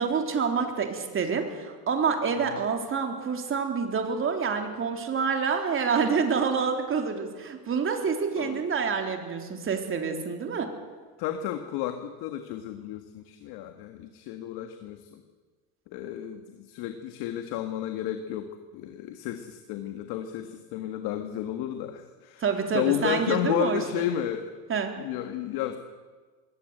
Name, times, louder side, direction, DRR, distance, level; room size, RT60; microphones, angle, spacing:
voice 1, 0.0-10.7 22.4-24.0 24.7-24.9, right 5 dB, 30° right, 4 dB, 3.5 m, -27 dB
voice 2, 11.2-15.2 15.9-22.4 22.7-24.5 25.0-25.8, left 11 dB, 65° left, 7 dB, 1.8 m, -32 dB
21.5 x 18.0 x 8.1 m, 1.4 s
supercardioid pair, 120°, 40 cm